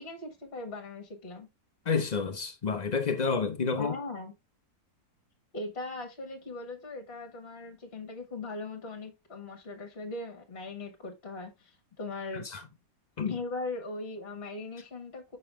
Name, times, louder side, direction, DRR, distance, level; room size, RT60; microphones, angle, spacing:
voice 1, 0.0-1.5 3.8-4.3 5.5-12.4 13.3-15.4, left 2 dB, 40° left, 1.6 m, -39 dB
voice 2, 1.9-3.9 12.3-12.6 13.2-13.4, left 5 dB, 80° left, 0.3 m, -29 dB
6.8 x 5.4 x 3.4 m
omnidirectional pair, 1.8 m